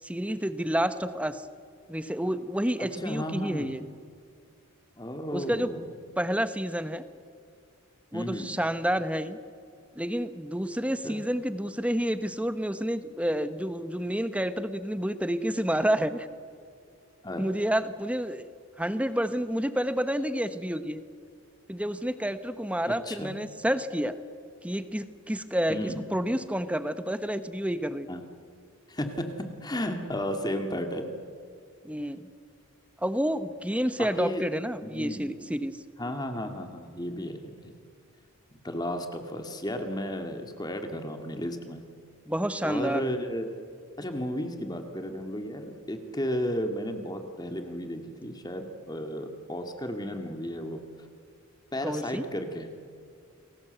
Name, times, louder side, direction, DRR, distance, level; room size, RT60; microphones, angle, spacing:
voice 1, 0.0-1.4 1.9-3.8 5.3-5.7 6.2-7.0 8.1-9.4 10.0-16.3 17.4-18.4 18.8-21.0 21.7-24.2 24.6-28.1 31.8-32.3 33.0-35.8 42.3-43.1 51.8-52.3, equal, 5° right, 11 dB, 1.0 m, -29 dB
voice 2, 2.8-3.7 5.0-5.9 8.1-8.5 11.0-11.2 17.2-17.4 22.9-23.3 25.7-26.0 28.1-28.2 28.9-31.1 34.0-34.4 34.8-35.3 36.0-37.7 38.6-41.8 42.6-43.5 44.0-50.8 51.7-52.7, equal, 20° left, 5 dB, 2.1 m, -33 dB
29.5 x 21.0 x 8.1 m, 2.3 s
head